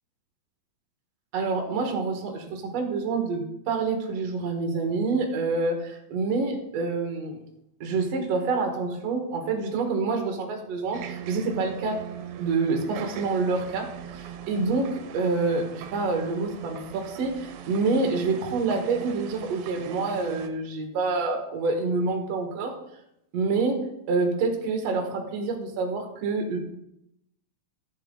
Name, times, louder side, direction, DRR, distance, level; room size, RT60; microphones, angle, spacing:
voice 1, 1.3-7.4 7.8-12.0 12.4-13.9 14.1-22.7 23.3-23.8 24.1-26.6, right 3 dB, 55° right, 4 dB, 2.2 m, -27 dB
sound 1, 10.9-20.5, right 9 dB, 80° right, 2.4 m, -40 dB
11.5 x 7.2 x 3.8 m, 0.80 s
omnidirectional pair, 4.2 m